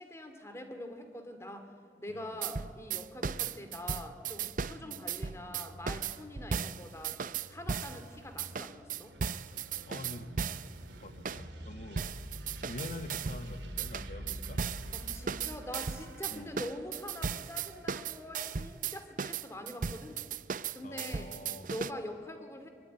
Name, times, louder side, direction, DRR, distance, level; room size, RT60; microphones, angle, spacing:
voice 1, 0.0-1.7 2.0-9.1 14.9-20.2 20.7-21.3 21.7-22.7, left 1 dB, 15° left, 7 dB, 2.3 m, -44 dB
sound 1, 2.4-8.0 8.4-10.7 11.3-11.4 12.0-13.5 13.8-21.9, right 6 dB, 45° right, 0.6 m, -36 dB
sound 2, 3.6-19.0, equal, 80° right, 3.1 m, -49 dB
voice 2, 9.9-10.3 11.0-12.1 12.7-14.6 16.3-16.5 20.8-21.7, left 1 dB, 45° left, 9 dB, 1.4 m, -45 dB
24.0 x 23.5 x 9.4 m, 2.3 s
head